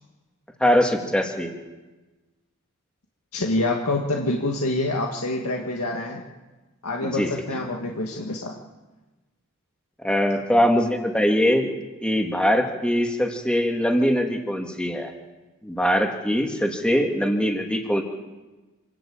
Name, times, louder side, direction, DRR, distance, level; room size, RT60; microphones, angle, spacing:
voice 1, 0.6-1.5 7.0-7.3 10.0-11.7 12.0-15.1 15.6-18.0, equal, 5° left, 2 dB, 2.3 m, -22 dB
voice 2, 3.3-6.2 6.8-8.5, left 2 dB, 80° left, 0 dB, 2.0 m, -26 dB
26.0 x 12.5 x 8.8 m, 1.2 s
head